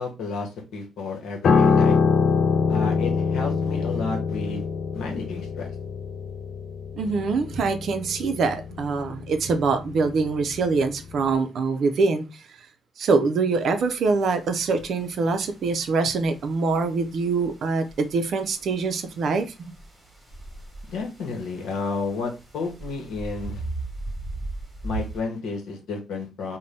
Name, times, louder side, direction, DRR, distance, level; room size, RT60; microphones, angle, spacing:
voice 1, 0.0-2.0 2.7-4.7 4.9-5.7 20.9-23.6 24.8-26.6, left 4 dB, 80° left, 0.9 m, -31 dB
Piano, 1.4-10.8 11.1-11.4, left 5 dB, 55° left, 0.4 m, -24 dB
voice 2, 7.0-12.4 13.0-19.7, right 4 dB, 60° right, 0.5 m, -24 dB
sound 1, 13.5-25.2, right 3 dB, 15° right, 1.1 m, -39 dB
2.6 x 2.2 x 3.2 m
cardioid pair, 90°, 0 cm